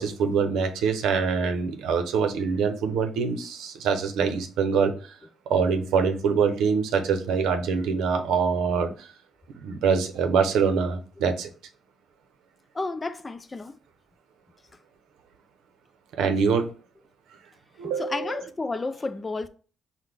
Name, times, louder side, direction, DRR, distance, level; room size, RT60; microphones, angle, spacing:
voice 1, 0.0-4.9 5.5-8.9 9.6-11.5 16.2-16.7 17.8-18.4, right 6 dB, 85° right, 0.6 m, -24 dB
voice 2, 12.7-13.7 17.8-19.5, left 3 dB, 25° left, 0.4 m, -31 dB
5.7 x 2.1 x 3.3 m
cardioid pair, 90°, 0 cm